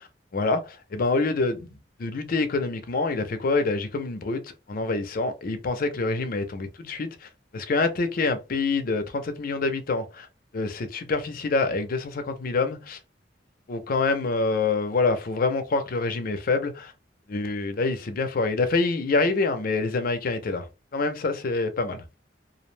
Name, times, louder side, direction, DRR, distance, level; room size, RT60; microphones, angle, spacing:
voice 1, 0.3-1.7 2.0-10.3 10.5-13.0 13.7-16.9 17.3-20.7 20.9-22.0, left 3 dB, 50° left, 0.5 m, -26 dB
2.4 x 2.0 x 3.1 m
head